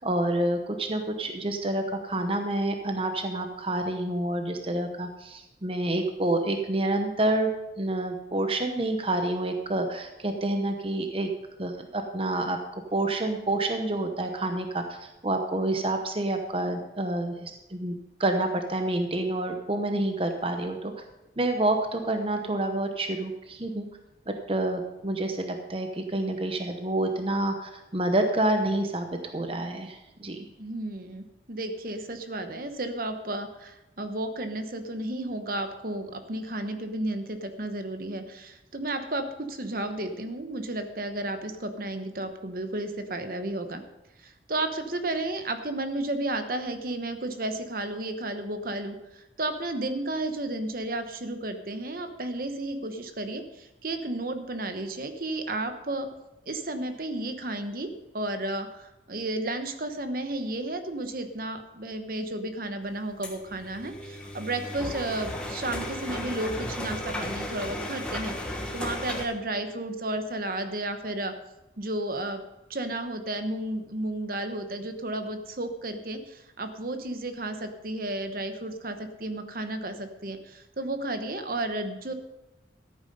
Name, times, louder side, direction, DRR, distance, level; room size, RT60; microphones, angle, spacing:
voice 1, 0.0-7.5 7.8-11.3 11.6-12.6 12.9-20.9 21.4-23.9 24.3-30.5, right 1 dB, 30° right, 5 dB, 0.9 m, -28 dB
voice 2, 30.6-43.8 44.2-56.1 56.5-71.3 71.8-72.4 72.7-82.1, right 1 dB, 50° right, 8 dB, 1.0 m, -33 dB
sound 1, 63.2-69.3, left 1 dB, 5° left, 1.4 m, -35 dB
14.0 x 8.9 x 5.4 m, 0.97 s
head